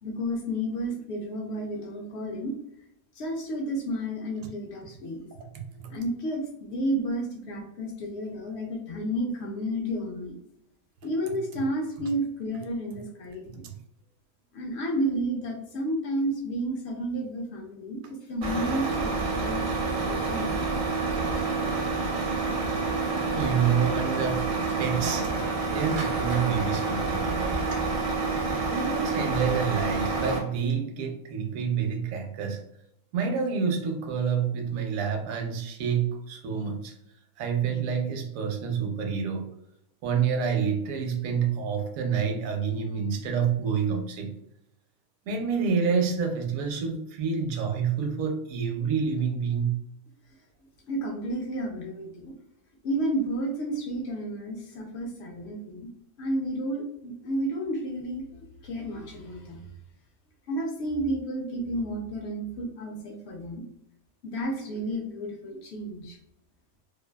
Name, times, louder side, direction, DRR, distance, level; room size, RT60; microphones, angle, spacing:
voice 1, 0.0-2.6 3.2-5.4 5.9-10.4 11.0-13.6 14.5-20.8 50.9-52.4 52.8-55.9 56.2-59.6 60.5-63.6 64.2-66.2, right 1 dB, 65° left, 2 dB, 0.7 m, -31 dB
Truck, 18.4-30.4, right 3 dB, 55° right, 0.6 m, -28 dB
voice 2, 23.1-24.5 24.8-25.3 25.7-27.7 28.7-32.6 33.1-36.9 37.4-39.5 40.0-44.3 45.3-49.8, right 6 dB, 75° right, 4 dB, 0.9 m, -28 dB
2.6 x 2.3 x 2.2 m, 0.80 s
omnidirectional pair, 1.5 m